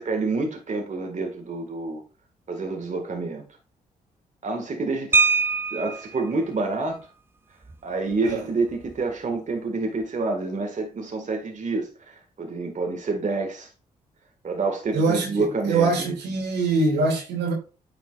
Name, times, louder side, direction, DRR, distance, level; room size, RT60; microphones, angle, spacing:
voice 1, 0.0-2.0 2.5-3.4 4.4-5.2 5.7-7.1 7.8-13.7 14.4-16.2, right 3 dB, 45° right, 1.7 m, -28 dB
sound 1, 5.1-6.2 7.6-7.8 8.1-8.3 8.7-9.0, right 4 dB, 15° right, 0.4 m, -22 dB
voice 2, 14.9-17.5, right 3 dB, 75° right, 2.4 m, -23 dB
9.4 x 5.8 x 2.4 m
hypercardioid pair, 45°, 18 cm